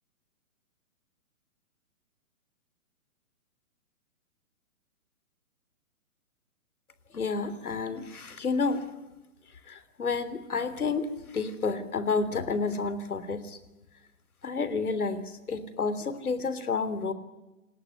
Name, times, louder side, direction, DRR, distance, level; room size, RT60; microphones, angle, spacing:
voice 1, 7.1-8.9 9.7-13.6 14.4-17.1, left 4 dB, 90° left, 13 dB, 3.4 m, -30 dB
28.5 x 19.5 x 9.8 m, 1.1 s
hypercardioid pair, 150°, 43 cm